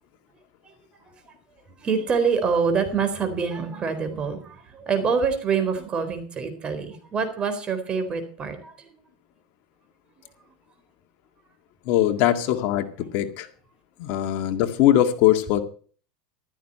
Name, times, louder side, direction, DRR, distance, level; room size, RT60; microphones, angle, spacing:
voice 1, 1.7-9.0, right 5 dB, 25° right, 8 dB, 4.2 m, -26 dB
voice 2, 11.9-13.5 14.0-15.6, left 12 dB, 55° left, 7 dB, 2.0 m, -21 dB
15.5 x 13.0 x 4.4 m, 0.42 s
supercardioid pair, 135°, 4 cm